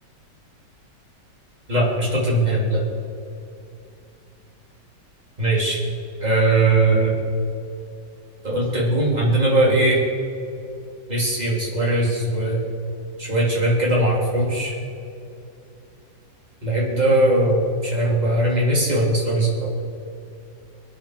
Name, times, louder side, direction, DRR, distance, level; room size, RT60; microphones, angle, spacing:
voice 1, 1.7-2.8 5.4-5.8 6.2-7.1 8.4-10.0 11.1-12.6 13.2-14.7 16.6-19.7, right 1 dB, 20° right, -5 dB, 3.7 m, -20 dB
22.5 x 8.5 x 6.6 m, 2.6 s
omnidirectional pair, 1.9 m